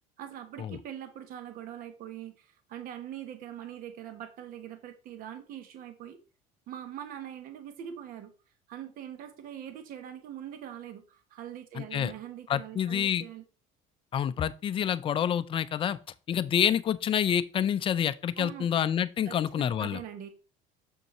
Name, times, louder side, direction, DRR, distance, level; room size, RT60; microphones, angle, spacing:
voice 1, 0.2-6.2 6.7-8.3 8.7-13.4 18.4-18.7 19.2-20.3, right 10 dB, 55° right, 1.1 m, -42 dB
voice 2, 11.7-12.1 12.5-13.2 14.1-16.0 16.3-20.0, left 9 dB, 30° left, 0.5 m, -28 dB
6.8 x 6.5 x 3.0 m
cardioid pair, 125°, 18 cm